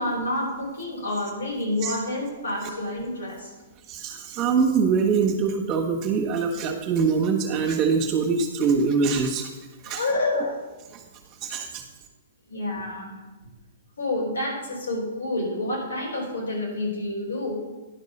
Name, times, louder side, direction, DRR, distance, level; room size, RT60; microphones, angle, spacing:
voice 1, 0.0-3.5 9.8-10.6 12.5-13.2 14.0-17.6, left 1 dB, 85° left, -3 dB, 3.7 m, -28 dB
voice 2, 3.9-9.5 9.8-10.0 10.9-11.0 11.4-11.8, right 5 dB, 35° right, 2 dB, 1.4 m, -23 dB
10.5 x 5.4 x 5.4 m, 1.1 s
hypercardioid pair, 120°, 0 cm